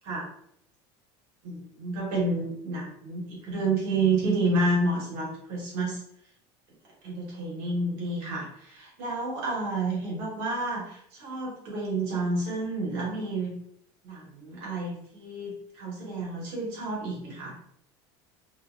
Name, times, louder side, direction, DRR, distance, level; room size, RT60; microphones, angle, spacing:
voice 1, 1.4-6.0 7.0-13.5 14.0-17.5, right 2 dB, 60° right, -4 dB, 1.2 m, -30 dB
2.7 x 2.3 x 2.4 m, 0.71 s
cardioid pair, 175°, 12 cm